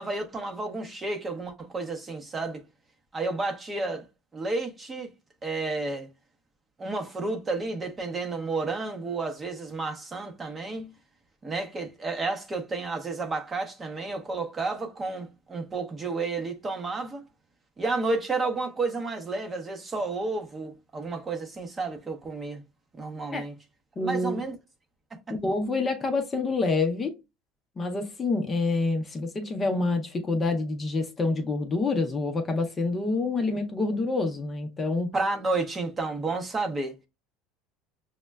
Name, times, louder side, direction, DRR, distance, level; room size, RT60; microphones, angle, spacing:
voice 1, 0.0-2.6 3.1-4.0 4.3-5.1 5.4-6.1 6.8-10.9 11.4-17.2 17.8-22.6 22.9-23.6 24.0-24.6 25.1-25.4 35.1-36.9, right 3 dB, 20° right, 0.6 m, -31 dB
voice 2, 24.0-24.4 25.4-27.2 27.8-35.1, left 3 dB, 20° left, 0.5 m, -27 dB
6.0 x 2.1 x 2.2 m
cardioid pair, 140°, 0 cm